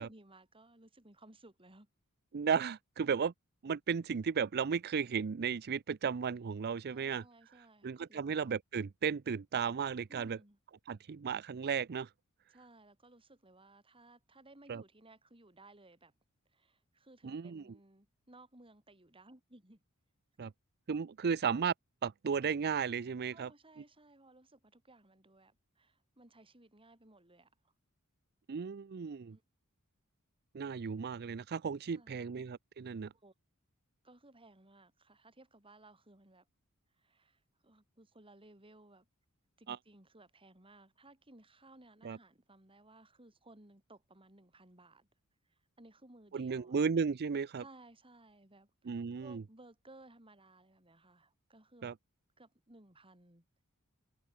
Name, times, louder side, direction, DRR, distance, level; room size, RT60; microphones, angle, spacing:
voice 1, 0.0-1.9 6.8-8.4 10.1-10.6 12.5-16.1 16.5-19.8 23.3-27.5 29.3-29.4 31.9-32.3 33.1-33.3 34.0-36.5 37.0-39.1 39.6-45.1 45.5-46.8 47.6-51.9 52.4-53.4, right 2 dB, 25° right, 4.8 m, -60 dB
voice 2, 2.3-3.3 3.6-7.2 7.8-10.4 10.9-12.1 14.7-14.8 17.2-17.6 20.4-20.5 20.9-21.7 22.0-23.5 28.5-29.4 30.5-33.1 39.7-39.8 42.0-42.2 46.3-47.6 48.9-49.4 51.8-51.9, right 6 dB, 45° right, 0.5 m, -34 dB
head